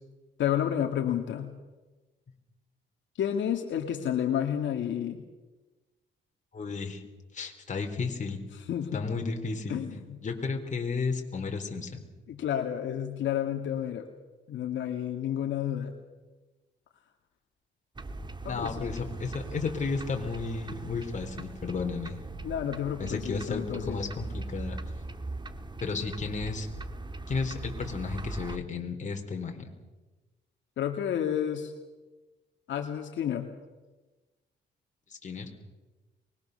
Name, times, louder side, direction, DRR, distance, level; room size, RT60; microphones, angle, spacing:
voice 1, 0.4-1.5 3.2-5.2 8.7-9.0 9.7-10.2 12.3-14.1 14.5-15.9 18.4-18.8 22.4-24.0 30.8-31.7 32.7-33.5, left 9 dB, 70° left, 4 dB, 2.1 m, -30 dB
voice 2, 6.5-7.0 7.3-8.4 8.9-9.8 10.2-12.0 18.5-22.2 23.0-24.8 25.8-26.7 27.3-29.7 35.2-35.5, left 4 dB, 40° left, 3 dB, 4.1 m, -33 dB
sound 1, 18.0-28.6, right 2 dB, 20° right, 1.5 m, -40 dB
24.0 x 21.0 x 6.9 m, 1.2 s
cardioid pair, 90°, 20 cm